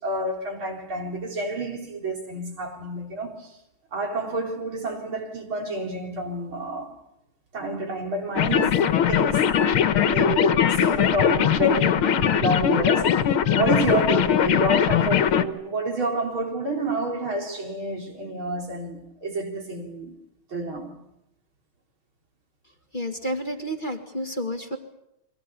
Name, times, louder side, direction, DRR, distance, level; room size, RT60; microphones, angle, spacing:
voice 1, 0.0-3.6 3.9-7.0 7.5-20.2 20.5-21.0, right 1 dB, 75° right, 4.6 m, -29 dB
sound 1, 8.4-15.4, left 9 dB, 85° left, 2.1 m, -21 dB
voice 2, 22.9-24.8, equal, 25° left, 2.0 m, -30 dB
29.5 x 23.5 x 6.9 m
omnidirectional pair, 2.3 m